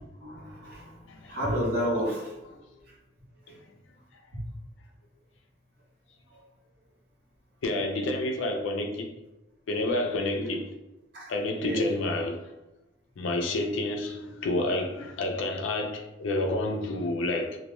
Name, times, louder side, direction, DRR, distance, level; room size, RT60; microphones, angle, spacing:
voice 1, 0.2-1.0 1.3-2.6 10.3-10.5 11.1-11.3 11.6-11.9, equal, 55° right, 0.9 m, -30 dB
voice 2, 7.6-9.1 9.7-10.6 11.3-12.4 13.2-17.6, left 2 dB, 80° left, 0.4 m, -29 dB
2.2 x 2.1 x 2.9 m
head